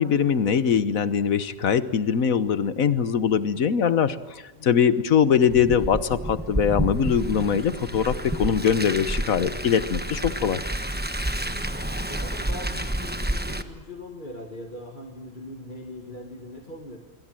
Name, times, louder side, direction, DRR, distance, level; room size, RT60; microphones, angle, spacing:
voice 1, 0.0-10.6, left 7 dB, 85° left, 13 dB, 1.5 m, -22 dB
voice 2, 4.6-4.9 11.4-17.0, left 2 dB, 35° left, 3 dB, 2.0 m, -41 dB
Car, 5.5-13.6, right 1 dB, 10° right, 1.1 m, -30 dB
26.0 x 23.5 x 7.7 m, 1.2 s
omnidirectional pair, 1.4 m